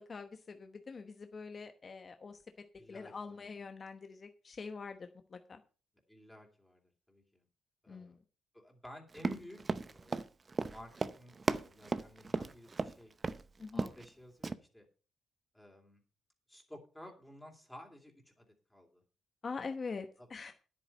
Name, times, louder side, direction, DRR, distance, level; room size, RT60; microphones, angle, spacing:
voice 1, 0.1-2.4 2.9-5.6 7.9-8.2 13.6-13.8 19.4-20.5, left 4 dB, 40° left, 7 dB, 1.0 m, -44 dB
voice 2, 2.8-3.5 6.1-7.4 7.8-8.2 8.5-10.2 10.6-13.1 13.7-14.9 15.5-16.0 16.5-19.0 20.2-20.5, left 1 dB, 5° left, 1 dB, 2.9 m, -54 dB
Run, 9.1-12.9 13.2-13.4 13.7-14.1 14.4-14.5, right 4 dB, 30° right, 0.7 m, -35 dB
9.9 x 8.7 x 5.5 m, 0.37 s
cardioid pair, 90°, 0 cm